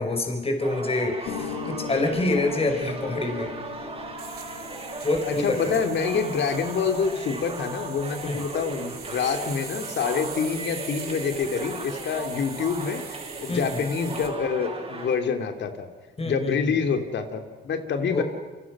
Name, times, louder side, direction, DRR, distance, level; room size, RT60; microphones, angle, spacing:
voice 1, 0.0-3.5 5.0-5.8 8.2-8.4 13.5-13.8 16.2-16.7 18.1-18.2, left 2 dB, 30° left, 4 dB, 5.0 m, -26 dB
sound 1, 0.6-15.2, right 3 dB, 30° right, 6.4 m, -38 dB
Piano, 1.2-9.3, left 6 dB, 85° left, 2.5 m, -40 dB
sound 2, 2.0-14.3, right 6 dB, 50° right, 3.9 m, -42 dB
voice 2, 5.3-13.0 13.4-15.9 16.2-18.2, left 6 dB, 65° left, 6 dB, 3.1 m, -26 dB
28.5 x 25.0 x 6.2 m, 1.2 s
cardioid pair, 90°, 20 cm